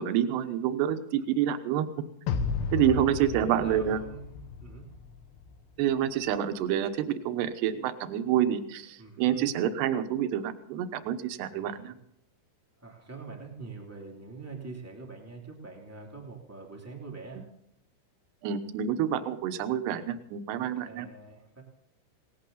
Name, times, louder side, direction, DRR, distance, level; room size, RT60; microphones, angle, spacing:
voice 1, 0.0-1.9 2.7-4.0 5.8-11.9 18.4-21.1, right 10 dB, 70° right, 9 dB, 2.8 m, -28 dB
sound 1, 2.3-5.6, left 5 dB, 75° left, 2.7 m, -34 dB
voice 2, 2.7-4.9 9.0-9.5 11.5-11.9 12.8-17.5 20.5-21.6, right 4 dB, 15° right, 0 dB, 0.6 m, -44 dB
18.5 x 17.0 x 4.0 m, 0.78 s
omnidirectional pair, 5.7 m